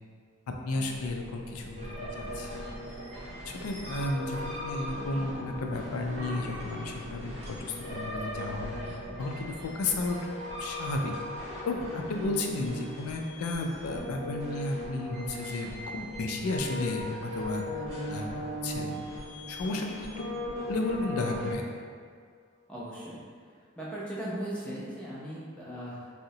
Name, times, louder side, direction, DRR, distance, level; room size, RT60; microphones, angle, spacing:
voice 1, 0.6-2.9 3.5-10.3 10.6-11.1 11.6-17.6 18.1-19.0 19.5-20.2 20.6-21.7, left 2 dB, 85° left, 2 dB, 0.4 m, -33 dB
sound 1, 0.7-10.2, equal, 80° right, 0.7 m, -46 dB
sound 2, 1.7-21.5, equal, 30° right, 0.7 m, -39 dB
voice 2, 22.7-23.2 23.8-26.1, right 1 dB, 5° left, -8 dB, 0.5 m, -38 dB
3.7 x 2.0 x 2.7 m, 2.1 s
head